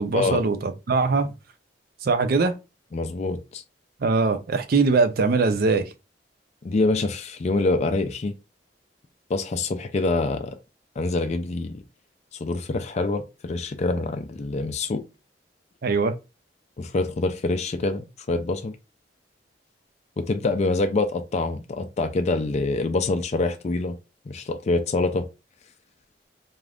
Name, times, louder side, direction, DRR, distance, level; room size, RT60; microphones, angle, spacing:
voice 1, 0.0-1.3 2.0-2.6 4.0-5.8 15.8-16.1, right 4 dB, 60° right, 0.5 m, -21 dB
voice 2, 2.9-3.6 6.6-8.3 9.3-10.5 11.0-11.8 12.4-15.0 16.8-18.8 20.2-23.9 24.3-25.2, left 3 dB, 40° left, 0.4 m, -25 dB
2.5 x 2.4 x 3.3 m
head